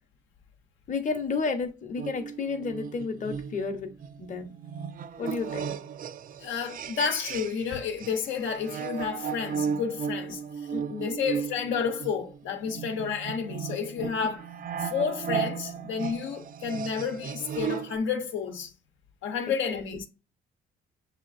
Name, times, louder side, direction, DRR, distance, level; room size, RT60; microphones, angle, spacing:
voice 1, 0.9-3.9 4.2-4.5 5.2-5.7 10.7-11.2 14.0-14.3 19.7-20.0, left 4 dB, 40° left, 0.8 m, -32 dB
sound 1, 2.0-7.7 8.0-18.0, right 7 dB, 45° right, 0.4 m, -35 dB
voice 2, 6.4-10.7 11.0-14.5 14.8-18.7 19.2-20.1, left 6 dB, 75° left, 0.8 m, -31 dB
6.1 x 2.8 x 2.5 m
cardioid pair, 90°, 20 cm